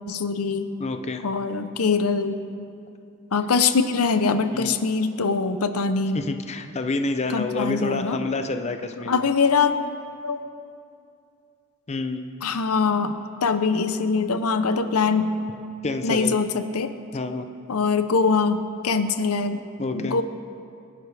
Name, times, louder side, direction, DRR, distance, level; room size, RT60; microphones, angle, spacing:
voice 1, 0.1-0.7 1.2-2.4 3.3-6.2 7.3-8.2 9.0-9.8 10.2-10.4 12.4-15.3 16.0-16.9 17.7-19.6 19.9-20.2, left 4 dB, 80° left, 10 dB, 0.8 m, -23 dB
voice 2, 0.8-1.3 4.5-4.7 6.1-9.3 11.9-12.3 15.8-16.3 17.1-17.5 19.8-20.2, left 3 dB, 30° left, 7 dB, 0.6 m, -28 dB
25.5 x 11.0 x 3.4 m, 2.5 s
head